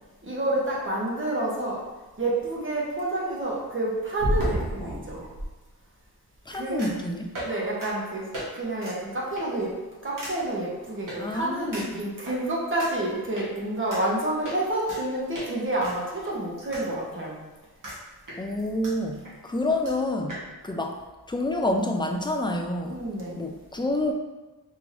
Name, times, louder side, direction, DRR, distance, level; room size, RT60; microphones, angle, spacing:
voice 1, 0.2-1.9 2.2-5.2 6.5-6.9 7.4-8.3 8.5-9.8 10.0-17.4 22.8-23.4, right 1 dB, 35° right, -4 dB, 1.1 m, -29 dB
sound 1, 4.2-5.5 6.8-7.0 7.3-7.5 7.8-7.9 8.3-8.5 8.8-9.0 9.4-9.6 10.2-10.3 11.1-11.2 11.7-12.4 12.8-12.9 13.4-13.5 13.9-14.0 14.5-15.0 15.3-15.5 15.8-16.9 17.1-17.2 17.8-18.0 18.3-18.9 19.3-19.4 19.5-19.6 19.9-20.0 20.3-20.4, equal, 55° right, 1.4 m, -32 dB
voice 2, 6.5-7.2 11.2-12.0 18.4-20.4 20.6-21.0 21.3-23.0 23.4-24.1, left 1 dB, 15° left, 3 dB, 0.3 m, -28 dB
4.5 x 3.4 x 2.6 m, 1.2 s
wide cardioid pair, 115°, 37 cm